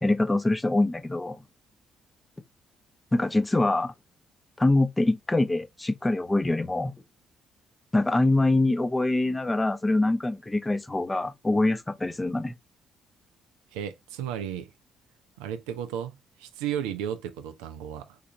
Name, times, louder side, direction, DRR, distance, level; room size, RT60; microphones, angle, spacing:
voice 1, 0.0-1.4 3.1-3.9 4.6-6.9 7.9-12.5, left 2 dB, 15° left, 0.6 m, -24 dB
voice 2, 13.7-14.7 15.4-18.2, right 9 dB, 70° right, 0.4 m, -34 dB
3.2 x 2.4 x 2.7 m
figure-of-eight pair, 45°, 0 cm